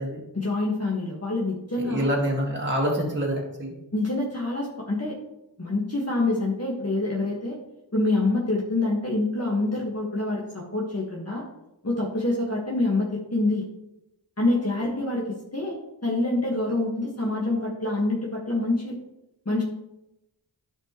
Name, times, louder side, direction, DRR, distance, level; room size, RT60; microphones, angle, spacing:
voice 1, 0.3-2.1 3.9-5.1 5.6-7.6 7.9-11.4 11.8-13.6 14.4-15.7 16.0-18.9 19.4-19.6, left 2 dB, 35° left, -4 dB, 1.7 m, -26 dB
voice 2, 1.8-3.7, equal, 25° right, -3 dB, 2.0 m, -26 dB
11.5 x 5.0 x 3.1 m, 0.91 s
wide cardioid pair, 45°, 45 cm